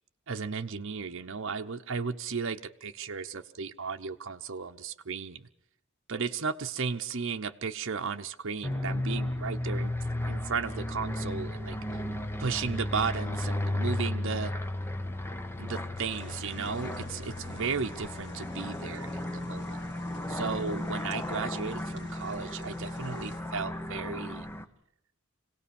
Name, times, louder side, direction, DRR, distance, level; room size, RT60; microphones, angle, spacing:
voice 1, 0.3-5.5 6.1-9.9 10.2-12.0 12.4-14.5 15.6-19.9 20.3-24.5, right 5 dB, 65° right, 5 dB, 0.8 m, -35 dB
sound 1, 8.6-24.6, left 1 dB, 10° left, 0.9 m, -34 dB
sound 2, 16.1-23.4, left 1 dB, 60° left, 4.5 m, -50 dB
25.5 x 17.5 x 7.1 m, 0.78 s
head